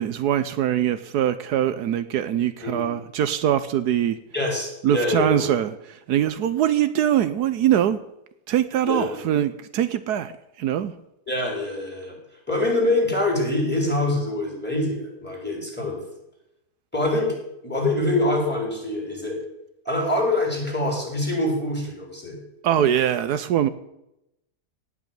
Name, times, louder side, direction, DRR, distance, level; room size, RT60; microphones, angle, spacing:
voice 1, 0.0-4.2 4.8-8.0 8.5-10.3 10.6-10.9 22.6-23.7, right 10 dB, 80° right, 12 dB, 1.3 m, -22 dB
voice 2, 4.3-5.5 8.9-9.2 11.3-12.2 12.5-16.0 16.9-17.3 17.6-19.4 19.8-22.4, left 2 dB, 5° left, 1 dB, 4.3 m, -24 dB
17.5 x 6.2 x 9.0 m, 0.85 s
omnidirectional pair, 1.7 m